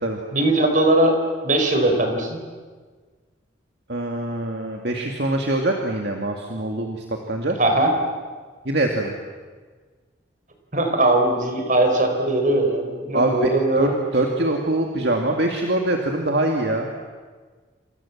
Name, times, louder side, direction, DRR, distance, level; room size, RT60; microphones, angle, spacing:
voice 1, 0.3-1.2 1.4-2.4 7.6-7.9 10.7-13.9, right 1 dB, 40° right, 4 dB, 5.0 m, -20 dB
voice 2, 3.9-7.6 8.6-9.1 13.1-16.9, right 1 dB, 60° right, 2 dB, 2.4 m, -24 dB
29.0 x 27.0 x 7.4 m, 1.5 s
head